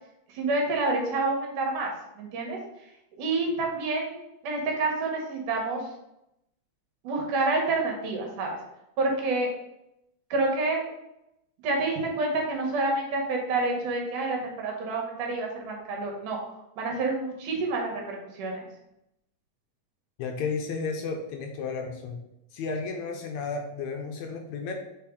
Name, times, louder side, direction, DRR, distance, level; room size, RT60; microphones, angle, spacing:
voice 1, 0.3-2.6 3.2-4.2 4.4-5.8 7.0-8.6 9.0-9.5 10.3-10.8 11.6-16.4 16.8-18.7, right 2 dB, 80° right, 0 dB, 2.9 m, -28 dB
voice 2, 20.2-22.2 22.5-24.7, left 4 dB, 75° left, 3 dB, 2.0 m, -33 dB
7.4 x 4.0 x 3.8 m, 0.84 s
omnidirectional pair, 3.6 m